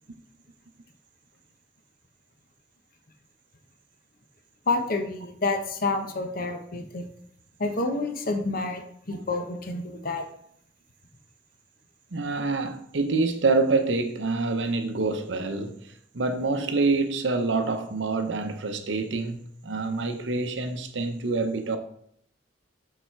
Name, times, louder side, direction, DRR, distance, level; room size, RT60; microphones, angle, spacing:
voice 1, 4.7-7.0 7.6-8.8 9.1-10.2, left 3 dB, 50° left, 0.9 m, -28 dB
voice 2, 12.1-21.8, right 3 dB, 65° right, 0.8 m, -26 dB
6.9 x 4.1 x 4.5 m
head